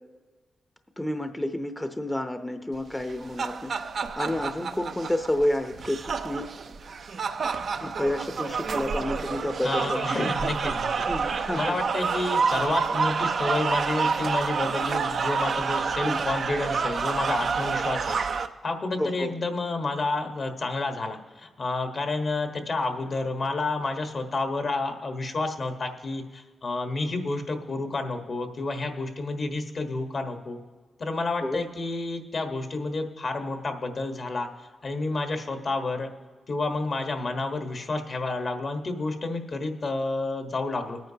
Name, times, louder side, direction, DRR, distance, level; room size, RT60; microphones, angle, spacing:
voice 1, 1.0-3.7 4.2-6.5 7.8-10.0 11.1-11.8 16.1-16.2 19.0-19.3 31.4-31.6, left 1 dB, 15° left, 7 dB, 0.7 m, -29 dB
sound 1, 3.0-18.5, right 5 dB, 70° right, 0.6 m, -28 dB
voice 2, 9.6-18.2 18.6-30.6 31.0-34.5 34.8-36.1 36.5-41.0, left 3 dB, 60° left, 5 dB, 1.4 m, -30 dB
21.5 x 9.1 x 2.9 m, 1.4 s
supercardioid pair, 50°, 0 cm